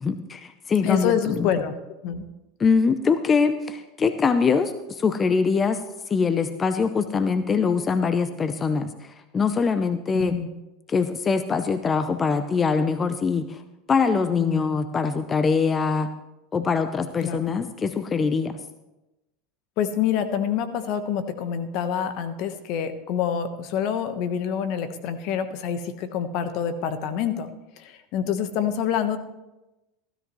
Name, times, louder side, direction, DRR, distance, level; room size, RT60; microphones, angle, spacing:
voice 1, 0.0-1.5 2.6-10.4 10.9-13.6 13.9-16.1 16.5-18.6, left 5 dB, 25° left, 10 dB, 0.7 m, -23 dB
voice 2, 0.8-1.7 2.0-2.2 10.1-10.5 14.4-14.7 17.2-17.4 19.8-27.5 27.8-29.2, left 8 dB, 60° left, 10 dB, 1.1 m, -26 dB
15.5 x 13.0 x 3.1 m, 1.0 s
hypercardioid pair, 100°, 0 cm